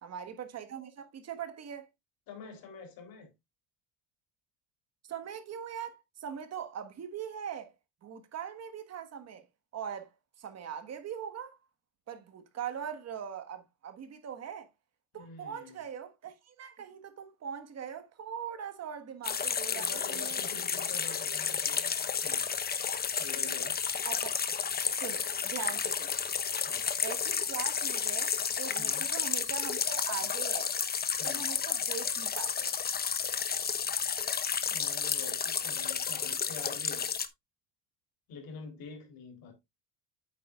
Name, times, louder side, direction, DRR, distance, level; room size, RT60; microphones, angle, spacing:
voice 1, 0.0-1.9 5.1-7.7 8.0-9.4 9.7-11.6 12.1-14.7 15.1-20.4 24.0-24.3 25.0-26.2 27.0-30.7 31.2-32.7, right 8 dB, 40° right, 1.5 m, -41 dB
voice 2, 2.3-3.3 15.1-15.8 19.7-21.8 22.2-22.5 23.2-23.8 26.6-26.9 28.8-29.1 31.2-31.5 34.7-37.0 38.3-39.5, left 5 dB, 65° left, 3.5 m, -47 dB
sound 1, 19.2-37.3, left 7 dB, 25° left, 0.9 m, -32 dB
8.6 x 8.5 x 2.4 m
cardioid pair, 115°, 38 cm